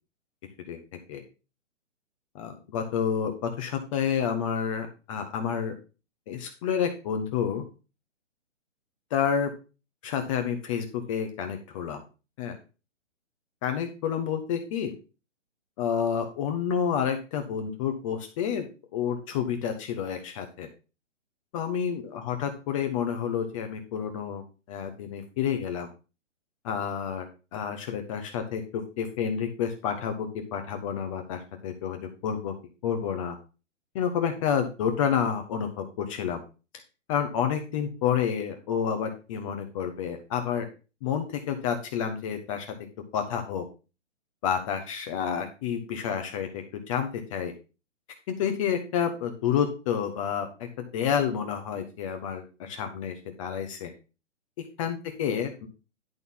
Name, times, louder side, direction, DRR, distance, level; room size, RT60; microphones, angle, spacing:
voice 1, 2.3-5.7 6.3-7.6 9.1-9.5 10.0-12.0 12.4-12.6 13.6-14.9 15.8-18.7 18.9-20.7 21.5-25.9 26.6-32.5 32.8-33.4 33.9-36.4 37.1-40.7 41.0-42.7 43.1-43.7 44.4-47.5 48.3-53.9 54.8-55.7, left 8 dB, 25° left, 5 dB, 1.1 m, -29 dB
10.5 x 4.3 x 5.5 m, 0.32 s
hypercardioid pair, 155°, 37 cm